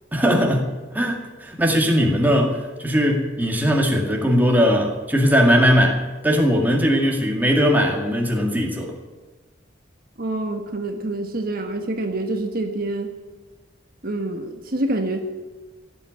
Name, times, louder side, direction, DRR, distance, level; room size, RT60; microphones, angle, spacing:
voice 1, 0.1-8.9, equal, 10° right, 1 dB, 2.0 m, -19 dB
voice 2, 10.2-13.1 14.0-15.2, right 2 dB, 50° right, 4 dB, 1.4 m, -26 dB
15.5 x 8.1 x 9.6 m, 1.3 s
head